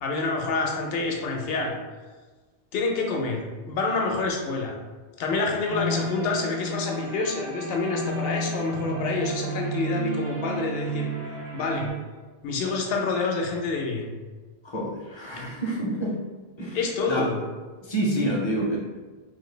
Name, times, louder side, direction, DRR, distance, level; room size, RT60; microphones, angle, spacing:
voice 1, 0.0-1.7 2.7-4.8 5.2-11.1 11.5-11.9 12.4-14.1 16.7-17.4, left 3 dB, 65° left, 1 dB, 0.8 m, -27 dB
sound 1, 5.7-11.9, right 2 dB, 90° right, 1.1 m, -32 dB
voice 2, 14.6-16.2 16.6-16.8 17.1-17.2 17.8-18.8, right 1 dB, 35° left, -3 dB, 0.4 m, -27 dB
3.1 x 2.2 x 3.2 m, 1.3 s
omnidirectional pair, 1.1 m